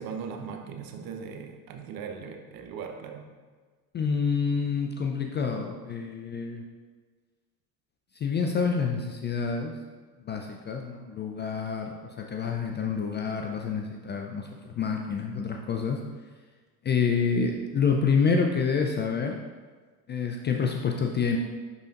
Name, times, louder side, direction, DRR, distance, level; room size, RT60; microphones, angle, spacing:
voice 1, 0.0-3.3, right 6 dB, 45° right, 4 dB, 0.9 m, -39 dB
voice 2, 3.9-6.6 8.1-9.7 10.2-16.0 16.8-19.4 20.1-21.4, left 5 dB, 25° left, 3 dB, 0.4 m, -28 dB
10.0 x 4.0 x 2.5 m, 1.4 s
figure-of-eight pair, 65°, 49 cm